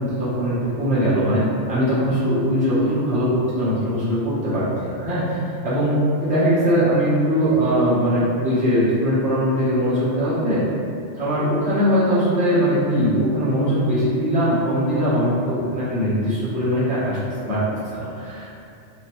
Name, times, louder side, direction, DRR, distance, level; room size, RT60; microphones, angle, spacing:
voice 1, 0.0-5.9 6.2-10.6 11.1-18.5, equal, 10° right, -12 dB, 0.5 m, -21 dB
2.7 x 2.1 x 2.9 m, 2.5 s
omnidirectional pair, 1.3 m